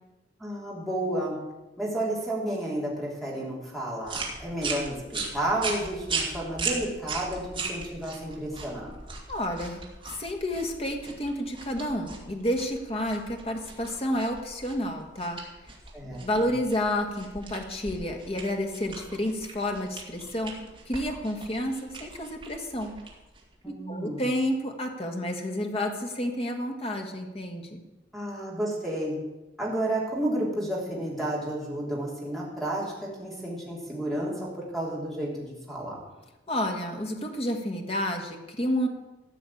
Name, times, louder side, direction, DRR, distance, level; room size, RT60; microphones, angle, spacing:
voice 1, 0.4-1.4 1.8-8.9 15.9-16.2 23.6-24.3 28.1-29.2 29.6-36.0, right 1 dB, ahead, -4 dB, 3.4 m, -31 dB
sound 1, 4.0-23.6, right 4 dB, 25° right, 2.3 m, -38 dB
voice 2, 9.3-9.8 10.2-15.4 16.2-20.5 20.8-22.9 23.6-27.8 36.5-38.9, left 1 dB, 30° left, 3 dB, 1.7 m, -30 dB
14.0 x 6.2 x 8.5 m, 1.1 s
head